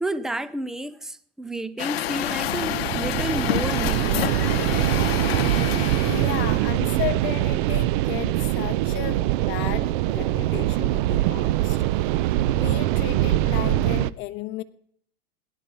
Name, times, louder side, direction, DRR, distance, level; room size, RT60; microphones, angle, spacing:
voice 1, 0.0-4.5, right 1 dB, ahead, 0.5 m, -31 dB
Truck, 1.8-6.6, left 14 dB, 75° left, 0.9 m, -28 dB
sound 1, 2.0-14.1, right 15 dB, 55° right, 0.6 m, -23 dB
voice 2, 5.8-12.0 12.5-14.6, left 15 dB, 40° left, 1.0 m, -34 dB
17.5 x 11.0 x 5.5 m
supercardioid pair, 130°, 31 cm